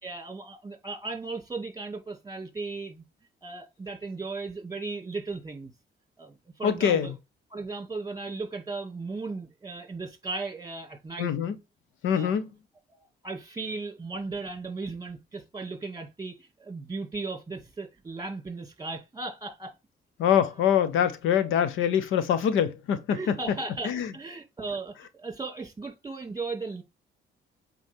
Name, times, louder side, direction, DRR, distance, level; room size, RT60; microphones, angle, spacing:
voice 1, 0.0-3.0 3.4-5.7 6.2-7.1 7.5-11.3 12.1-12.3 12.9-19.7 23.1-26.8, right 3 dB, 20° right, 2.2 m, -36 dB
voice 2, 6.6-7.1 11.2-11.6 12.0-12.5 20.2-23.4 23.8-24.1, left 8 dB, 85° left, 0.9 m, -24 dB
8.1 x 4.5 x 3.6 m
cardioid pair, 90°, 20 cm